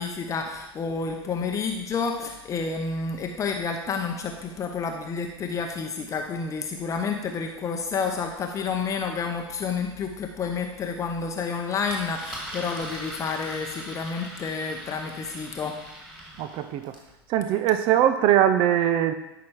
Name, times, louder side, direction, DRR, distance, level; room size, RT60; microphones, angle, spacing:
voice 1, 0.0-15.8, left 5 dB, 25° left, 3 dB, 0.9 m, -30 dB
Engine, 11.8-17.1, right 1 dB, 5° right, 2.6 m, -40 dB
voice 2, 16.4-17.0 17.3-19.1, right 11 dB, 40° right, 10 dB, 0.7 m, -21 dB
12.5 x 6.0 x 4.7 m, 0.93 s
figure-of-eight pair, 90°, 13 cm